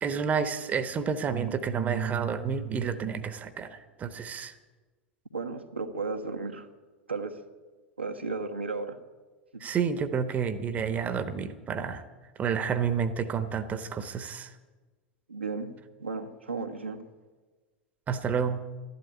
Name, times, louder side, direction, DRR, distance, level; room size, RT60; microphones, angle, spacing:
voice 1, 0.0-4.6 9.6-12.0 12.4-14.5 18.1-18.6, right 6 dB, 25° right, 12 dB, 1.1 m, -30 dB
voice 2, 5.3-6.7 7.1-7.3 8.0-9.0 15.3-15.7 16.0-17.0, right 4 dB, 80° right, 4 dB, 1.3 m, -34 dB
13.0 x 11.5 x 8.6 m, 1.3 s
figure-of-eight pair, 85°, 6 cm